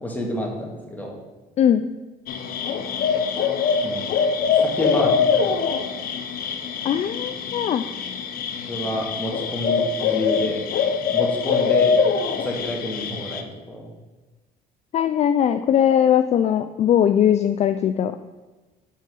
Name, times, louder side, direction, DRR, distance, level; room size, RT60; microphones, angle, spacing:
voice 1, 0.0-1.1 3.8-4.0 4.6-5.6 8.7-10.7 11.1-11.9 12.3-13.9, equal, 10° left, -1 dB, 1.8 m, -28 dB
sound 1, 2.3-13.4, left 6 dB, 60° left, 0.8 m, -23 dB
voice 2, 6.8-7.8 14.9-18.2, left 9 dB, 40° left, 9 dB, 0.4 m, -20 dB
5.5 x 5.2 x 6.6 m, 1.2 s
cardioid pair, 110°, 17 cm